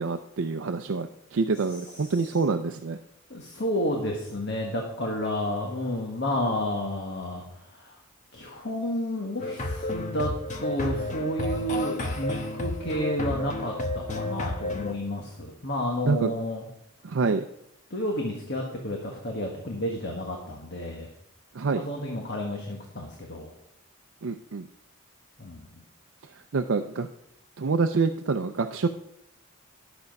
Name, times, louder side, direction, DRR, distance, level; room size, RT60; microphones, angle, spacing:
voice 1, 0.0-3.0 16.0-16.4 17.0-17.4 21.5-21.9 24.2-24.7 26.5-27.1 27.6-28.9, right 4 dB, 65° right, 6 dB, 0.5 m, -26 dB
voice 2, 3.3-7.4 7.8-7.9 8.3-10.3 10.6-16.6 17.9-21.1 21.7-23.5 25.4-25.7, left 1 dB, 50° left, 0 dB, 1.4 m, -31 dB
sound 1, 9.4-14.9, left 2 dB, 35° left, 1.0 m, -31 dB
12.0 x 6.9 x 5.3 m, 0.82 s
head